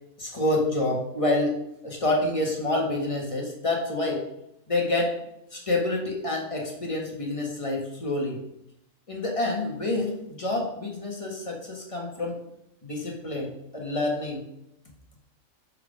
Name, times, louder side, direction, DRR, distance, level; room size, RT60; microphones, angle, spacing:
voice 1, 0.2-4.2 4.7-5.1 5.5-8.4 9.1-12.4 12.8-14.4, left 2 dB, 25° left, -1 dB, 1.6 m, -28 dB
6.4 x 4.8 x 5.0 m, 0.80 s
omnidirectional pair, 1.4 m